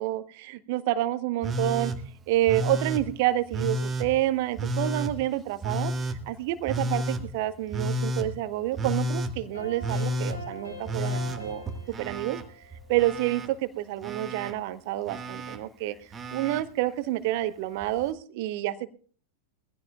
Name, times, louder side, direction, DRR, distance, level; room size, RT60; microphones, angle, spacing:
voice 1, 0.0-1.9 2.3-5.9 6.3-12.4 12.9-16.0 16.3-18.9, right 15 dB, 50° right, 15 dB, 0.9 m, -28 dB
Telephone, 1.4-2.0 2.5-3.0 3.5-4.1 4.6-5.1 5.6-6.2 6.7-7.2 7.7-8.3 8.8-9.3 9.8-10.4 10.9-12.4 12.7-13.5 14.0-14.5 15.1-15.6 16.1-16.6 17.8-17.9, right 1 dB, 20° right, 1.4 m, -30 dB
sound 1, 9.4-13.6, right 1 dB, 75° left, 7.4 m, -43 dB
22.0 x 15.5 x 2.3 m, 0.42 s
figure-of-eight pair, 90°, 0 cm